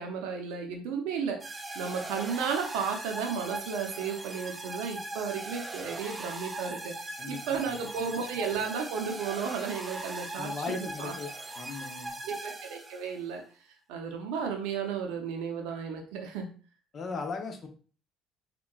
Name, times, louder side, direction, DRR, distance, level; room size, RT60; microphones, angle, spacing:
voice 1, 0.0-11.1 12.2-13.4 13.9-16.5, right 6 dB, 80° right, 3 dB, 0.5 m, -34 dB
sound 1, 1.4-13.2, right 2 dB, 25° right, 0.4 m, -40 dB
voice 2, 7.2-7.8 10.3-11.3 11.6-12.2 16.9-17.7, left 4 dB, 45° left, 5 dB, 0.6 m, -37 dB
3.6 x 2.2 x 2.3 m, 0.39 s
supercardioid pair, 80°, 0 cm